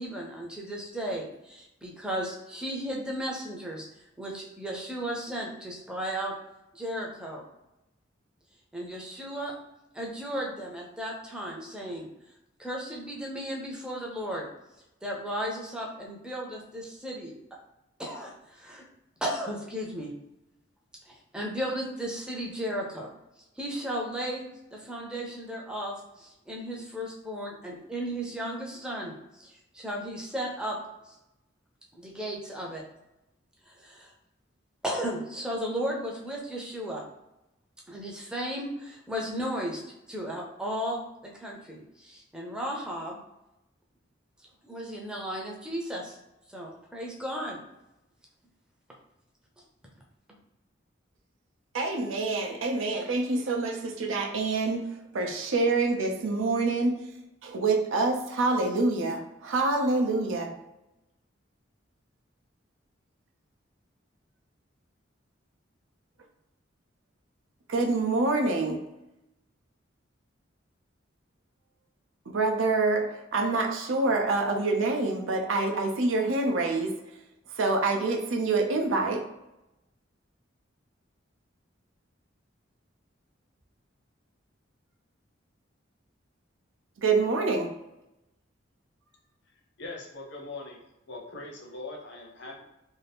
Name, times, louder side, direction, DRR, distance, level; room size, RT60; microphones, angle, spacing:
voice 1, 0.0-3.9 4.2-6.3 6.7-7.4 8.7-9.5 9.9-12.1 12.6-14.5 15.0-17.3 18.0-18.9 19.2-20.1 21.1-23.1 23.6-30.8 31.0-31.2 31.9-32.8 33.7-34.1 34.8-37.0 37.9-39.8 40.1-43.2 44.6-46.2 46.5-47.6, equal, 5° right, -2 dB, 0.5 m, -35 dB
voice 2, 51.7-57.1 57.4-60.6 67.7-68.8 72.3-77.0 77.5-79.3 87.0-87.8, right 3 dB, 90° right, 2 dB, 0.5 m, -26 dB
voice 3, 89.8-90.8 91.1-92.6, left 2 dB, 60° left, 0 dB, 0.7 m, -41 dB
2.6 x 2.4 x 3.4 m, 0.91 s
head